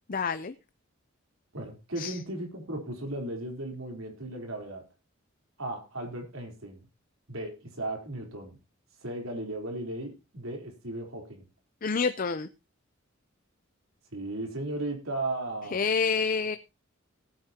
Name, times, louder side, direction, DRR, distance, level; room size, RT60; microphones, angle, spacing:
voice 1, 0.1-0.5 2.0-2.2 11.8-12.5 15.7-16.6, left 5 dB, 40° left, 11 dB, 0.6 m, -28 dB
voice 2, 1.5-4.8 5.6-6.8 7.3-8.6 9.0-11.4 14.1-15.8, right 2 dB, 85° right, 3 dB, 3.7 m, -36 dB
18.0 x 9.5 x 2.9 m, 0.26 s
head